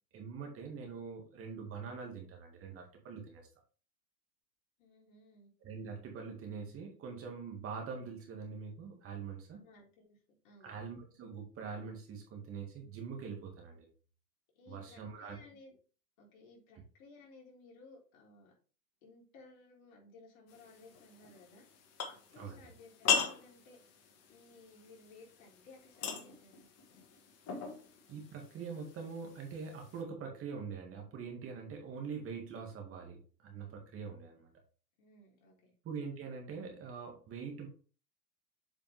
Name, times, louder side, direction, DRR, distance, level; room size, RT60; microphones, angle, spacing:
voice 1, 0.1-3.5 5.6-9.6 10.6-13.9 14.7-15.4 22.4-22.6 28.1-34.5 35.8-37.7, right 5 dB, 25° right, 2 dB, 2.0 m, -44 dB
voice 2, 4.8-5.5 9.6-10.7 14.6-15.7 16.2-18.6 19.0-21.7 22.1-23.8 24.3-26.7 35.0-35.7, left 3 dB, 50° left, -2 dB, 3.8 m, -58 dB
sound 1, 20.5-30.0, left 7 dB, 30° left, 1.6 m, -40 dB
7.8 x 5.0 x 3.5 m, 0.39 s
hypercardioid pair, 130°, 48 cm